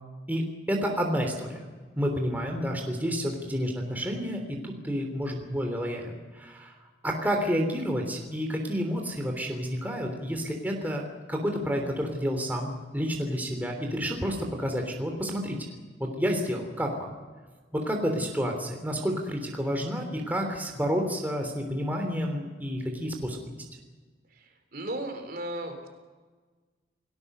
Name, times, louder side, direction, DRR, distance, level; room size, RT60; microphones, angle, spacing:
voice 1, 0.3-1.7 2.0-6.7 7.0-15.6 16.0-17.1 17.7-23.5, equal, 10° right, 2 dB, 3.2 m, -30 dB
voice 2, 24.7-25.9, right 1 dB, 55° right, 5 dB, 3.6 m, -35 dB
29.5 x 17.5 x 6.8 m, 1.4 s
head